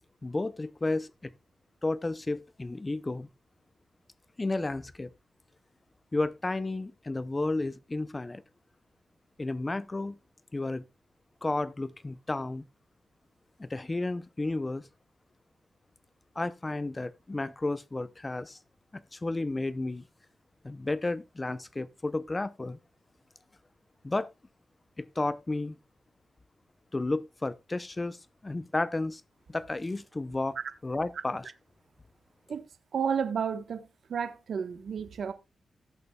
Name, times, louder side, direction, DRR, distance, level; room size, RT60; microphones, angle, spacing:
voice 1, 0.2-1.3 1.8-3.3 4.4-5.1 6.1-8.4 9.4-10.2 10.5-10.8 11.4-12.6 13.6-14.9 16.4-18.6 18.9-20.0 20.6-22.8 24.0-24.3 25.0-25.8 26.9-28.2 28.4-29.2 29.5-30.6 30.8-31.5, left 2 dB, 25° left, 0.6 m, -32 dB
voice 2, 32.9-33.8 34.1-35.3, right 7 dB, 70° right, 1.1 m, -31 dB
17.5 x 6.9 x 2.3 m
cardioid pair, 70°, 0 cm